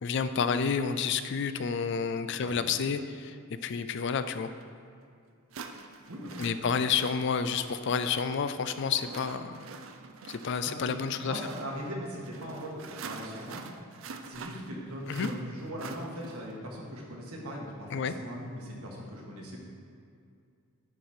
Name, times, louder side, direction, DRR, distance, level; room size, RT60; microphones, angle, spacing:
voice 1, 0.0-4.5 6.4-9.7 10.3-11.4 15.1-15.3 17.9-18.1, left 6 dB, 55° left, 11 dB, 0.3 m, -30 dB
voice 2, 2.4-2.7 6.1-6.7 10.6-10.9 11.2-13.6 14.2-19.6, equal, 80° right, -2 dB, 1.6 m, -40 dB
sound 1, 4.6-4.7 5.5-16.6, right 5 dB, 60° right, 0.4 m, -46 dB
9.6 x 5.0 x 4.4 m, 2.4 s
head